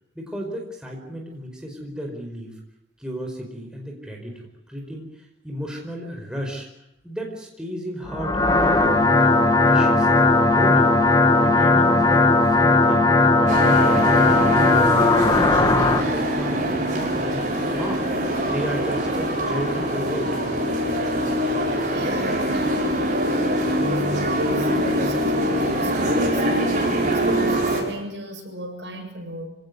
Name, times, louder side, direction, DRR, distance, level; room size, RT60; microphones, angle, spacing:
voice 1, 0.1-2.5 3.0-6.7 7.0-10.9 11.2-14.8 15.1-18.1 18.4-20.3, equal, 5° right, 0 dB, 4.9 m, -33 dB
sound 1, 8.1-16.0, left 2 dB, 20° left, 1.8 m, -17 dB
sound 2, 13.5-27.8, equal, 45° right, 6.7 m, -24 dB
voice 2, 21.9-29.5, equal, 70° right, 2 dB, 7.4 m, -34 dB
25.5 x 18.0 x 9.5 m, 0.87 s
head